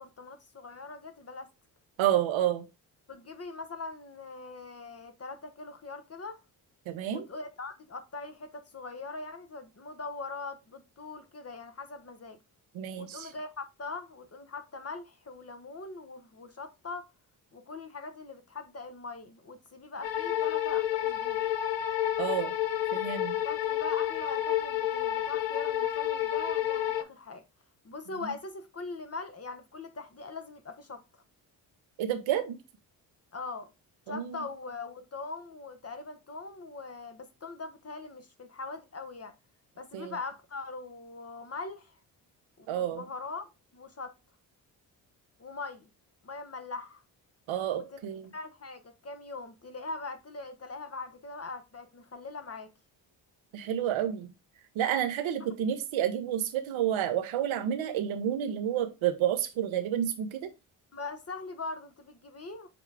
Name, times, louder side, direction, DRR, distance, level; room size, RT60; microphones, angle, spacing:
voice 1, 0.0-1.5 3.1-6.4 7.1-12.4 13.0-17.1 17.5-21.5 23.4-27.4 27.8-31.2 33.3-33.7 34.1-39.3 39.8-41.9 42.6-44.1 45.4-45.9 46.2-47.0 47.7-48.1 48.3-52.7 55.4-55.5 60.9-62.7, left 3 dB, 30° left, 1.0 m, -41 dB
voice 2, 2.0-2.6 6.9-7.3 12.7-13.3 22.2-22.5 22.9-23.4 32.0-32.6 34.1-34.4 39.9-40.1 42.7-43.0 47.5-48.3 53.5-54.3 54.7-60.5, right 10 dB, 70° right, 0.9 m, -30 dB
sound 1, 20.0-27.0, left 12 dB, 65° left, 0.8 m, -30 dB
6.9 x 2.3 x 3.3 m
supercardioid pair, 50°, 48 cm